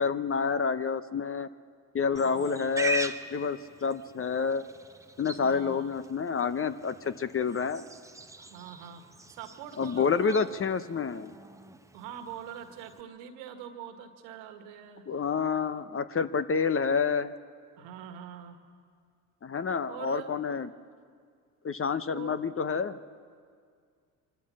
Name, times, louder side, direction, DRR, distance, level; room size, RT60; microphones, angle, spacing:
voice 1, 0.0-1.5 1.9-4.6 5.2-7.8 9.8-11.4 15.1-17.3 19.4-20.7 21.6-23.0, left 5 dB, 30° left, 13 dB, 0.9 m, -28 dB
voice 2, 2.1-2.6 5.4-5.9 8.4-10.6 11.9-15.1 17.8-18.6 19.9-20.6 22.1-22.4, right 9 dB, 75° right, 7 dB, 1.8 m, -44 dB
Livestock farm animals working animals, 2.2-13.0, right 2 dB, 5° right, 1.0 m, -41 dB
24.5 x 13.5 x 7.7 m, 2.1 s
hypercardioid pair, 60°, 46 cm